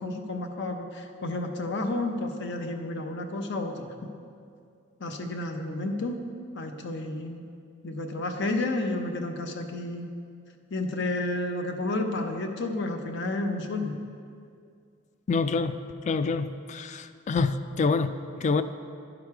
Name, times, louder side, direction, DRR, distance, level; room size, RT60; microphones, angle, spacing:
voice 1, 0.0-3.9 5.0-6.3 6.6-7.4 7.8-10.1 10.7-13.9, left 2 dB, 60° left, 5 dB, 0.7 m, -31 dB
voice 2, 15.3-15.8 16.1-18.6, left 4 dB, 35° left, 12 dB, 0.3 m, -27 dB
11.5 x 5.0 x 4.7 m, 2.3 s
head